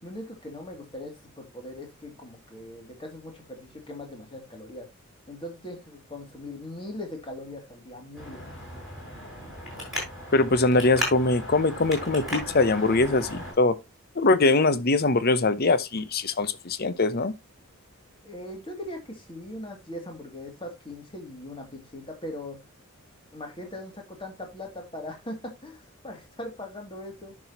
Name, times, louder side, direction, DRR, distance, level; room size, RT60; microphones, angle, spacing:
voice 1, 0.0-4.9 5.3-8.4 18.2-22.6 23.3-27.4, left 1 dB, 25° left, 2.6 m, -40 dB
Traffic noise roadway noise, 8.1-13.5, equal, ahead, 6.8 m, -36 dB
voice 2, 10.3-13.8 14.2-17.3, left 3 dB, 45° left, 0.8 m, -22 dB
11.0 x 6.2 x 2.9 m
head